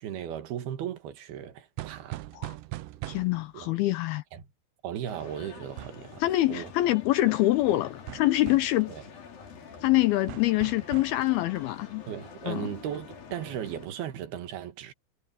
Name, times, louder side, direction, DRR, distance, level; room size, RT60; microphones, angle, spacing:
voice 1, 0.0-2.3 3.5-3.8 4.3-4.4 4.8-6.2 6.5-6.7 8.9-9.0 12.1-14.9, right 10 dB, 65° right, 3.4 m, -36 dB
Knocking on the door with a fist, 1.8-3.5 5.8-6.1 8.1-8.8 10.3-11.2, right 17 dB, 80° right, 3.0 m, -40 dB
voice 2, 3.1-4.2 6.2-8.9 9.8-12.0 12.5-12.7, left 16 dB, 80° left, 2.3 m, -25 dB
sound 1, 5.1-13.9, left 6 dB, 55° left, 4.9 m, -46 dB
omnidirectional pair, 5.2 m